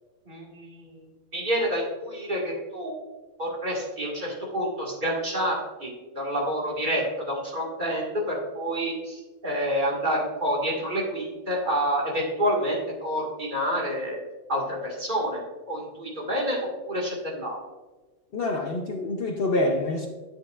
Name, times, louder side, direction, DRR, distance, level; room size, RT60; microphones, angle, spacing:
voice 1, 0.3-1.0 1.3-2.9 3.4-14.2 14.5-15.4 15.7-16.6 16.9-17.6, equal, 40° right, -3 dB, 2.1 m, -28 dB
voice 2, 18.3-20.1, left 2 dB, 50° left, 2 dB, 0.9 m, -26 dB
9.4 x 8.8 x 2.5 m, 1.2 s
omnidirectional pair, 1.3 m